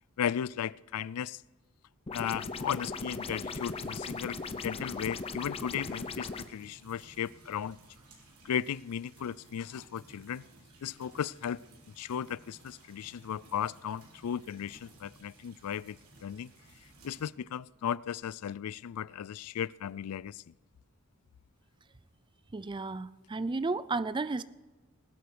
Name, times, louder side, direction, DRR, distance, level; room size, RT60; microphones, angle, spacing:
voice 1, 0.2-1.4 2.1-7.8 8.4-10.4 10.8-16.5 17.0-20.4, left 8 dB, 90° left, 0.4 m, -36 dB
sound 1, 2.1-6.5, left 4 dB, 25° left, 0.7 m, -38 dB
sound 2, 3.2-17.3, right 2 dB, 90° right, 4.0 m, -58 dB
voice 2, 22.5-24.4, right 3 dB, 20° right, 0.4 m, -33 dB
20.0 x 8.3 x 6.1 m
head